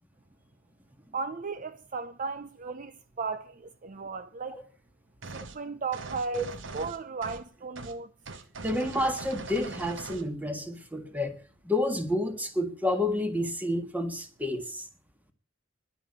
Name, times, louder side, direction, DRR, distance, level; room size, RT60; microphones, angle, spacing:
voice 1, 1.1-4.6 5.3-6.5 6.7-8.1, right 4 dB, 40° right, 0.6 m, -35 dB
sound 1, 5.2-5.6 5.9-7.5 7.8-8.0 8.3-10.3, right 3 dB, 70° right, 1.2 m, -41 dB
voice 2, 8.6-11.4 11.6-14.9, left 1 dB, 10° right, 1.7 m, -29 dB
11.0 x 8.9 x 8.5 m
head